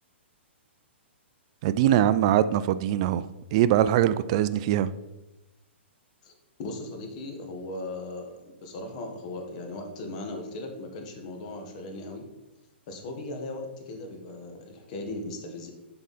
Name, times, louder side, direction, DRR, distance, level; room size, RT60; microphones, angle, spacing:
voice 1, 1.6-4.9, right 11 dB, 30° right, 14 dB, 0.3 m, -22 dB
voice 2, 6.6-12.3 12.9-15.7, left 2 dB, 35° left, 3 dB, 1.6 m, -38 dB
11.0 x 4.7 x 4.2 m, 0.99 s
hypercardioid pair, 165°, 7 cm